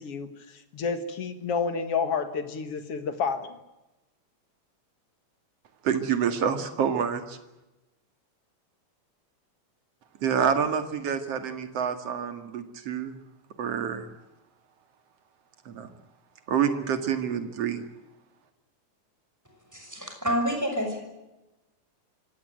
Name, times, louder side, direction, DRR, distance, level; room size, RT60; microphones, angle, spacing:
voice 1, 0.0-3.6, left 5 dB, 55° left, 10 dB, 2.3 m, -30 dB
voice 2, 5.8-7.4 10.2-13.2 13.6-14.1 15.7-15.9 16.5-17.8, right 7 dB, 55° right, 8 dB, 2.9 m, -27 dB
voice 3, 19.7-21.0, equal, 5° right, 3 dB, 6.1 m, -28 dB
25.0 x 17.5 x 9.1 m, 0.99 s
omnidirectional pair, 3.6 m